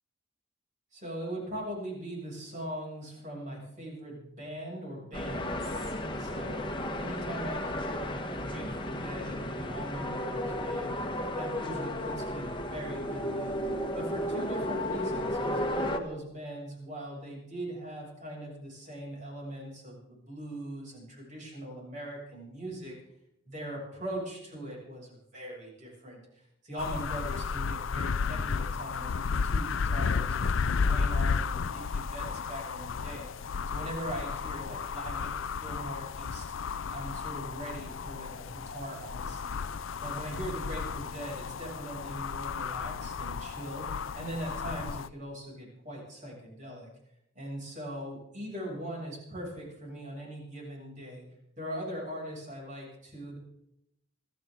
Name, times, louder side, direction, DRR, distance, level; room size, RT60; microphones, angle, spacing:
voice 1, 0.9-11.0 11.4-13.6 13.9-22.9 23.5-30.5 30.7-33.3 33.7-35.3 35.6-36.4 36.9-39.6 40.0-46.9 47.3-51.2 51.6-53.4, right 1 dB, 40° right, -2 dB, 7.4 m, -41 dB
sound 1, 5.1-16.0, left 1 dB, 25° left, 1.5 m, -33 dB
sound 2, 26.8-45.1, left 5 dB, 80° left, 0.5 m, -33 dB
26.0 x 13.5 x 3.9 m, 0.82 s
head